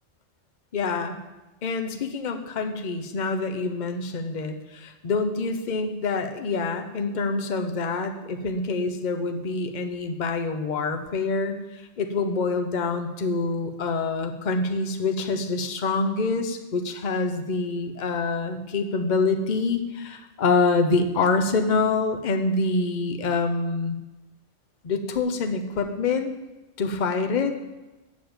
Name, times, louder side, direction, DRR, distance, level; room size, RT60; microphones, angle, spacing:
voice 1, 0.7-1.2 1.6-24.0 24.8-26.3 26.8-27.5, left 3 dB, 40° left, 6 dB, 0.9 m, -26 dB
7.2 x 6.9 x 7.8 m, 1.1 s
omnidirectional pair, 1.3 m